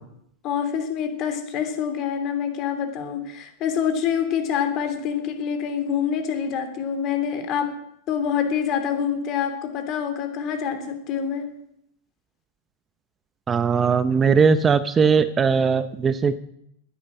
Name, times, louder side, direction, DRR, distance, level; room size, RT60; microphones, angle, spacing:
voice 1, 0.4-7.7 8.1-11.5, left 8 dB, 40° left, 7 dB, 3.1 m, -26 dB
voice 2, 13.5-16.4, right 5 dB, 20° right, 13 dB, 0.8 m, -19 dB
10.0 x 9.8 x 8.9 m, 0.74 s
hypercardioid pair, 110°, 0 cm